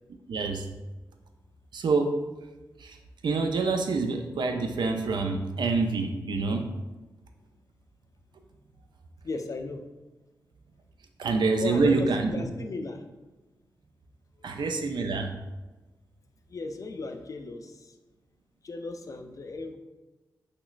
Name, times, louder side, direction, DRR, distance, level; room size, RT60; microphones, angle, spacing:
voice 1, 0.3-0.7 1.7-2.1 2.8-3.0 3.2-6.7 11.2-12.3 14.4-15.3, right 4 dB, 70° right, 5 dB, 0.4 m, -26 dB
voice 2, 9.2-9.9 11.6-13.1 14.4-14.6 16.5-17.9 18.6-19.8, left 3 dB, 45° left, 5 dB, 0.4 m, -36 dB
3.1 x 2.9 x 2.4 m, 1.1 s
supercardioid pair, 40°, 8 cm